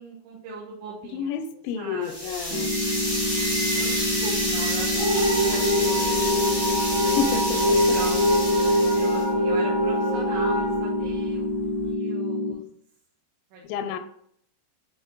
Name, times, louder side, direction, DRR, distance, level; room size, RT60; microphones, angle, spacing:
voice 1, 0.0-1.3 1.8-2.4 3.5-6.4 7.9-11.5 11.8-12.6 13.5-13.9, right 3 dB, 80° right, -5 dB, 3.4 m, -40 dB
voice 2, 1.1-2.7 7.0-8.0 8.6-8.9 13.6-14.0, left 7 dB, 85° left, 9 dB, 2.0 m, -30 dB
sound 1, 2.0-9.2, equal, 15° right, 0.8 m, -29 dB
sound 2, 2.5-12.5, left 2 dB, 60° right, 3.2 m, -28 dB
sound 3, 4.9-11.9, equal, 35° right, 2.0 m, -24 dB
8.6 x 4.5 x 3.9 m, 0.67 s
omnidirectional pair, 4.9 m